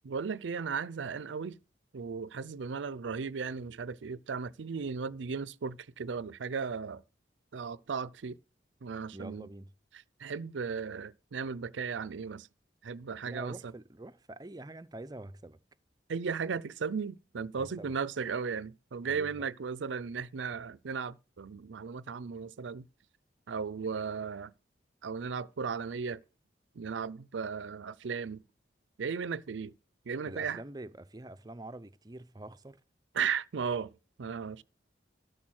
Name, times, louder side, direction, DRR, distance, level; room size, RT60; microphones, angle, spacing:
voice 1, 0.0-1.6 1.9-7.0 7.5-8.4 8.8-9.5 10.2-12.5 12.8-13.7 16.1-22.9 23.5-24.5 25.0-26.2 26.8-28.4 29.0-29.7 30.1-30.6 33.1-34.6, right 5 dB, 85° right, 0.5 m, -36 dB
voice 2, 9.1-9.7 13.2-15.6 17.6-17.9 19.1-19.3 30.2-32.8, right 1 dB, 20° right, 0.5 m, -46 dB
13.0 x 6.6 x 6.3 m
head